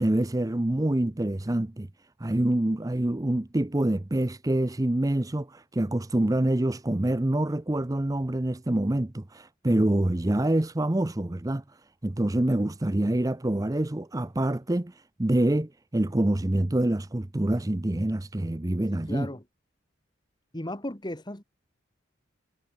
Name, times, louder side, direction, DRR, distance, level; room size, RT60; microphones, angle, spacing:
voice 1, 0.0-1.9 2.2-11.6 12.0-14.9 15.2-19.3, right 1 dB, 20° right, 0.6 m, -26 dB
voice 2, 18.9-19.4 20.5-21.4, left 1 dB, 20° left, 2.1 m, -36 dB
head